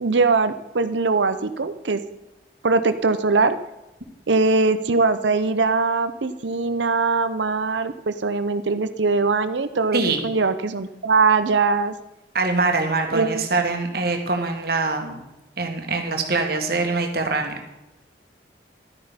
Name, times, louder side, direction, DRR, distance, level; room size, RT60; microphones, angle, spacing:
voice 1, 0.0-2.0 2.6-3.6 4.3-11.9 13.1-13.4, right 4 dB, 80° right, 11 dB, 0.7 m, -21 dB
voice 2, 9.9-10.2 12.3-15.2 15.6-17.6, right 3 dB, 55° right, 4 dB, 1.9 m, -23 dB
12.0 x 9.9 x 5.2 m, 0.98 s
head